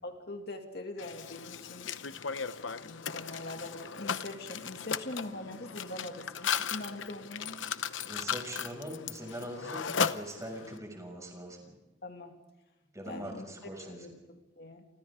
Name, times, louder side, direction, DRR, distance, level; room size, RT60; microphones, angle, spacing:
voice 1, 0.0-1.9 2.8-7.6 12.0-12.4 13.1-14.9, left 2 dB, 55° left, 3 dB, 2.4 m, -43 dB
Mechanisms, 1.0-10.8, left 7 dB, 85° left, 0.9 m, -36 dB
voice 2, 8.0-11.7 12.9-14.1, equal, 15° right, 1 dB, 6.5 m, -42 dB
30.0 x 25.0 x 3.7 m, 1.1 s
head